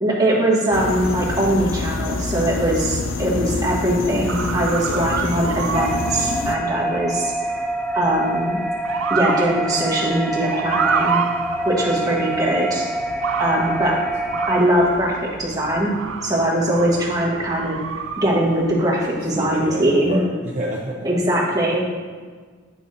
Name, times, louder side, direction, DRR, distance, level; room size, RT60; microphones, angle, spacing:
voice 1, 0.0-7.3 7.6-8.6 9.1-11.2 11.6-12.8 13.4-14.0 14.5-15.9 16.2-17.8 18.2-20.2 21.0-21.8, right 1 dB, 20° right, -5 dB, 1.3 m, -21 dB
sound 1, 0.7-6.6, left 3 dB, 75° left, 0.5 m, -27 dB
Motor vehicle (road) / Siren, 4.3-19.8, right 6 dB, 80° right, 0.4 m, -30 dB
voice 2, 4.8-5.3 12.0-12.5 13.8-14.4 16.8-17.1 19.2-21.2, right 1 dB, 40° right, -4 dB, 0.6 m, -31 dB
sound 2, 5.7-14.6, right 2 dB, 5° left, 0.3 m, -26 dB
8.2 x 6.1 x 2.6 m, 1.5 s
head